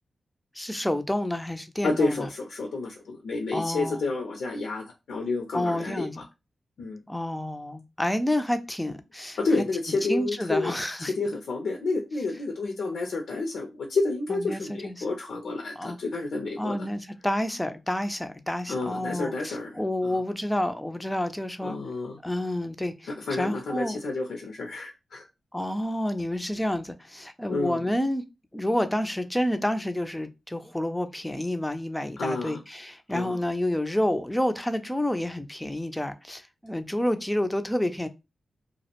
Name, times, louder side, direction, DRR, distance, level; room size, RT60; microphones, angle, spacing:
voice 1, 0.6-2.3 3.5-4.0 5.5-6.2 7.1-9.4 10.1-11.1 14.3-14.9 15.8-16.0 16.6-21.8 22.2-23.1 23.4-24.0 25.5-28.2 28.5-38.1, left 1 dB, 10° left, 0.3 m, -29 dB
voice 2, 1.8-6.1 6.8-7.0 9.4-16.8 18.7-20.2 21.6-22.2 23.2-25.3 27.5-27.8 32.2-32.6 33.1-33.4, left 3 dB, 90° left, 0.4 m, -30 dB
2.4 x 2.0 x 2.8 m
wide cardioid pair, 90°, 0 cm